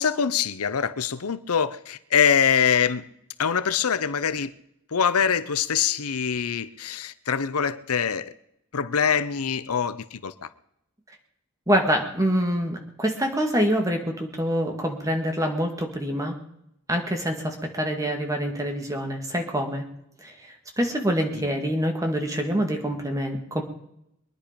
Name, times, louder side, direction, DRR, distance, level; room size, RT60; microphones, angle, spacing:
voice 1, 0.0-3.1 3.4-4.5 4.9-8.3 8.7-10.5 21.3-21.5, left 7 dB, 85° left, 0.7 m, -24 dB
voice 2, 11.7-16.4 16.9-19.8 20.2-23.6, equal, 15° right, 2.0 m, -26 dB
23.0 x 10.0 x 5.2 m
head